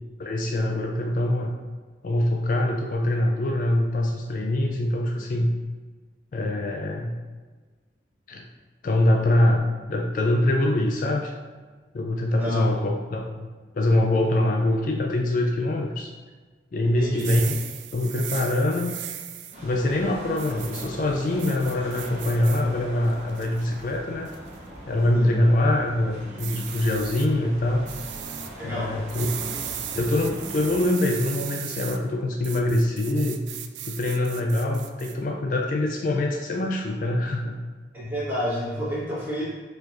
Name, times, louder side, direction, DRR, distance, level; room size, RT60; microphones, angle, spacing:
voice 1, 0.2-1.5 2.0-5.5 6.3-7.2 8.3-8.4 8.8-11.3 11.9-13.5 13.7-16.1 16.7-17.6 17.9-18.9 19.6-24.3 24.9-27.9 28.6-29.3 30.0-33.4 33.8-37.6, left 1 dB, 45° left, 2 dB, 0.3 m, -24 dB
voice 2, 12.3-12.7 16.8-17.3 25.1-25.4 28.6-29.0 37.9-39.4, equal, 10° right, -9 dB, 1.5 m, -29 dB
sound 1, 17.1-19.6 20.4-20.9 21.4-22.6 23.1-23.7 24.3-24.6 26.4-27.3 27.9-28.5 29.1-32.0 32.4-35.1, right 11 dB, 85° right, 0.4 m, -37 dB
sound 2, 19.5-30.9, equal, 40° right, 0.9 m, -40 dB
4.5 x 4.3 x 2.5 m, 1.4 s
head